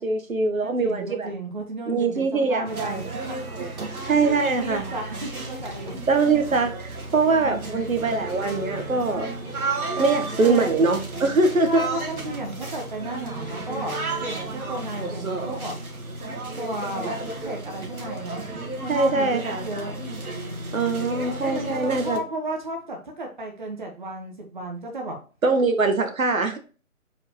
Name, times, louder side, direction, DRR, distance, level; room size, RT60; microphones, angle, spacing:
voice 1, 0.0-1.3 1.9-3.0 4.1-4.8 6.1-9.3 10.0-11.8 18.9-19.7 20.7-22.2 25.4-26.6, right 3 dB, 70° right, 6 dB, 1.3 m, -22 dB
voice 2, 0.8-3.0 3.6-3.9 4.2-5.9 7.4-7.9 10.0-10.7 11.7-13.9 14.2-15.7 16.6-18.5 18.8-19.9 21.4-25.2, right 2 dB, 35° right, 1 dB, 1.2 m, -33 dB
sound 1, 2.6-22.2, right 3 dB, 85° right, 1.9 m, -34 dB
sound 2, 7.5-22.7, equal, 10° left, 0.9 m, -41 dB
6.7 x 4.7 x 3.0 m, 0.36 s
hypercardioid pair, 175°, 42 cm